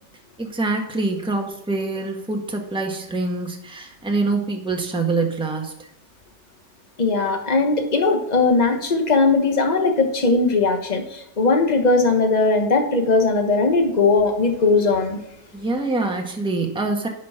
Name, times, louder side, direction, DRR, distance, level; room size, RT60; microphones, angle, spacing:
voice 1, 0.4-5.7 15.5-17.1, right 3 dB, 5° right, 2 dB, 1.2 m, -25 dB
voice 2, 7.0-15.2, left 3 dB, 25° left, 5 dB, 1.2 m, -19 dB
10.5 x 5.3 x 5.7 m, 0.82 s
omnidirectional pair, 1.8 m